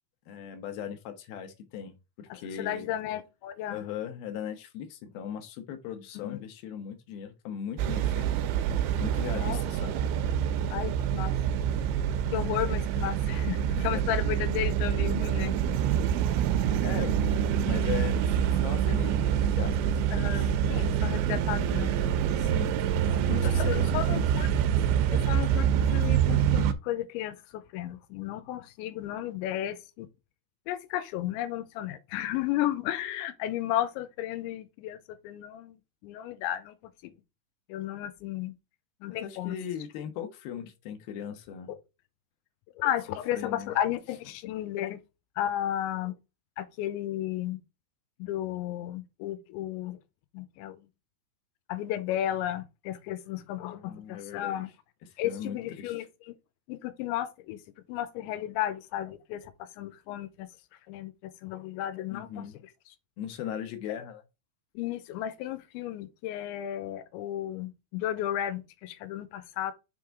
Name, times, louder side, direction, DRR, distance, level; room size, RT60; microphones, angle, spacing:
voice 1, 0.3-2.9 3.7-8.3 9.0-9.9 12.6-12.7 13.8-14.0 16.8-17.2 17.6-20.5 22.4-22.7 23.0-24.2 39.1-41.7 43.3-43.8 53.7-54.6 55.2-56.1 62.1-62.6 63.2-64.2, left 9 dB, 70° left, 2.4 m, -38 dB
voice 2, 2.6-3.8 6.2-6.4 9.3-9.6 10.7-11.3 12.3-15.5 20.1-21.9 23.4-24.5 25.1-30.1 30.7-36.8 37.0-37.1 37.7-38.5 39.0-39.6 42.8-45.0 45.4-46.1 46.6-47.6 48.2-50.0 50.3-50.8 51.7-54.7 55.2-56.3 56.7-57.6 57.9-60.5 60.9-62.4 64.8-69.7, left 12 dB, 90° left, 3.0 m, -33 dB
sound 1, 7.8-26.7, right 9 dB, 90° right, 3.1 m, -26 dB
6.9 x 3.8 x 4.6 m
omnidirectional pair, 5.3 m